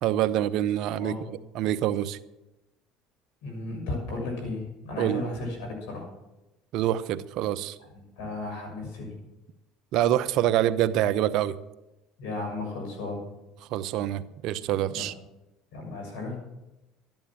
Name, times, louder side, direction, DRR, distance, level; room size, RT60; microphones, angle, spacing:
voice 1, 0.0-2.2 5.0-5.2 6.7-7.8 9.9-11.6 13.7-15.1, right 12 dB, 65° right, 13 dB, 0.8 m, -26 dB
voice 2, 3.4-6.1 7.9-9.1 12.2-13.2 14.9-15.0 15.7-16.4, left 2 dB, 80° left, 2 dB, 6.7 m, -34 dB
13.0 x 11.0 x 7.4 m, 0.96 s
supercardioid pair, 90°, 0 cm